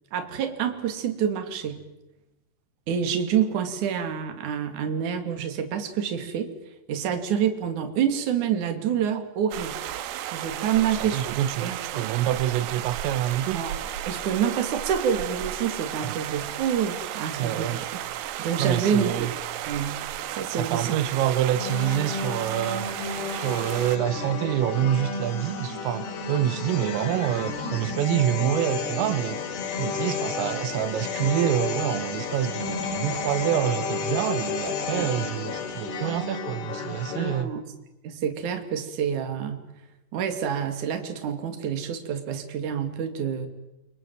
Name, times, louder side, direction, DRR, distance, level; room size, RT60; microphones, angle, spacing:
voice 1, 0.1-1.8 2.9-6.5 6.9-9.8 10.1-12.1 13.5-13.7 14.1-18.0 18.4-19.4 19.6-20.0 20.3-21.0 35.0-35.1 37.2-37.6 38.0-39.6 40.1-43.5, right 8 dB, 45° right, 3.4 m, -27 dB
sound 1, 9.5-24.0, right 12 dB, 70° right, 2.9 m, -34 dB
voice 2, 10.8-13.7 16.0-16.2 17.4-17.9 18.6-19.3 20.5-22.9 23.3-29.4 29.8-37.5, right 12 dB, 85° right, 3.8 m, -27 dB
sound 2, 21.6-37.4, left 5 dB, 60° left, 4.3 m, -32 dB
29.5 x 25.5 x 7.8 m
omnidirectional pair, 5.7 m